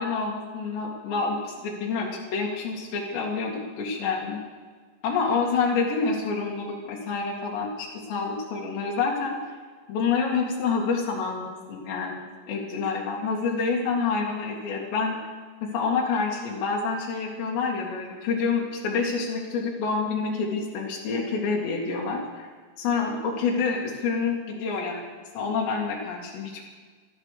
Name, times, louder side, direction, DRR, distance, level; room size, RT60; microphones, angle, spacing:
voice 1, 0.0-4.4 5.0-9.4 9.9-15.2 15.6-22.5 22.8-26.6, left 4 dB, 85° left, -2 dB, 4.4 m, -28 dB
17.0 x 13.0 x 6.6 m, 1.5 s
omnidirectional pair, 4.9 m